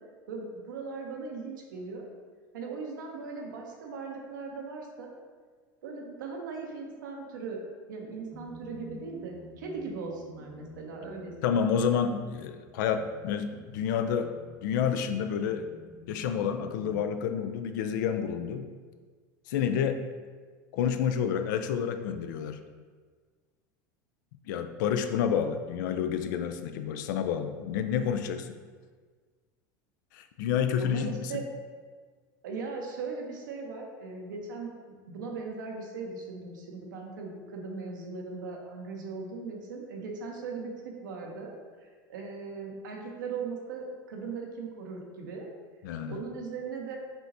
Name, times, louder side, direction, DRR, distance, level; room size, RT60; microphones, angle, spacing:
voice 1, 0.3-2.1 2.5-5.1 5.8-7.6 7.9-11.7 30.8-31.4 32.4-34.7 35.1-45.5 46.1-47.0, right 4 dB, 90° right, 1 dB, 0.8 m, -39 dB
sound 1, 8.3-17.1, left 1 dB, 5° left, 0.3 m, -51 dB
voice 2, 11.4-14.3 14.6-15.7 16.1-18.7 19.5-20.0 20.7-22.6 24.5-28.5 30.1-31.3 45.8-46.2, left 7 dB, 75° left, 8 dB, 0.4 m, -29 dB
5.4 x 3.0 x 2.6 m, 1.5 s
hypercardioid pair, 100°, 10 cm